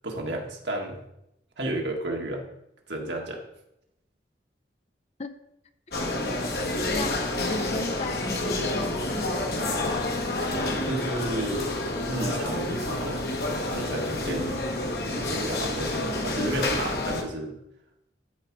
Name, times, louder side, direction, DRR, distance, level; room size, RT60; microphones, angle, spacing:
voice 1, 0.0-1.0 1.6-2.5 2.9-3.4 10.4-11.7 12.1-13.3 13.7-14.6 15.1-17.6, right 1 dB, 75° right, 1 dB, 1.8 m, -32 dB
sound 1, 5.9-17.2, left 2 dB, 55° left, 1.4 m, -29 dB
voice 2, 7.5-9.5, left 2 dB, 35° left, 9 dB, 0.6 m, -35 dB
12.5 x 4.8 x 4.7 m, 0.83 s
head